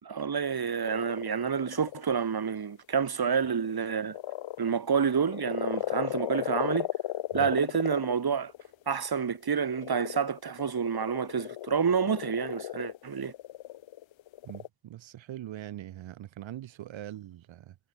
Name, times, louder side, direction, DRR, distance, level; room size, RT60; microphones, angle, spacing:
voice 1, 0.0-4.2 4.6-6.9 7.3-8.5 8.9-13.3, right 6 dB, 55° right, 4.1 m, -28 dB
sound 1, 0.8-2.0 3.0-14.7, left 13 dB, 90° left, 2.7 m, -36 dB
voice 2, 14.4-17.8, right 12 dB, 90° right, 4.8 m, -42 dB
supercardioid pair, 55°, 45 cm